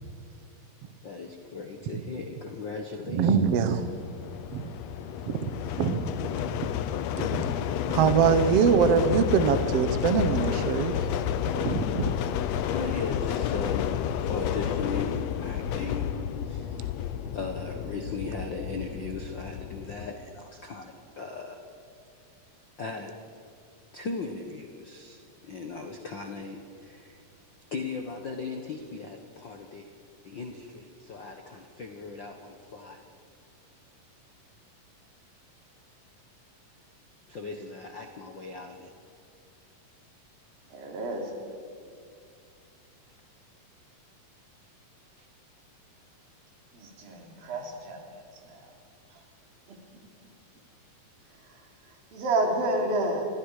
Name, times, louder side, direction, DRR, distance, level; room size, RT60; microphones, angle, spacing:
voice 1, 1.0-3.8 12.6-14.0 14.3-15.1 15.4-16.1 16.5-16.8 17.3-21.6 22.8-23.1 23.9-27.2 27.7-29.9 30.2-33.0 37.3-38.9 45.2-45.3, left 3 dB, 60° left, 4 dB, 1.2 m, -38 dB
voice 2, 3.1-3.9 4.5-4.7 5.3-5.5 5.8-6.1 7.2-7.5 7.9-11.0 11.6-12.1, right 7 dB, 65° right, 10 dB, 1.7 m, -23 dB
sound 1, 3.6-20.1, left 9 dB, 85° left, 1.5 m, -31 dB
voice 3, 40.7-41.3 46.7-48.0 52.1-53.3, right 2 dB, 80° right, 1 dB, 4.7 m, -29 dB
29.0 x 22.0 x 4.9 m, 2.4 s
omnidirectional pair, 4.1 m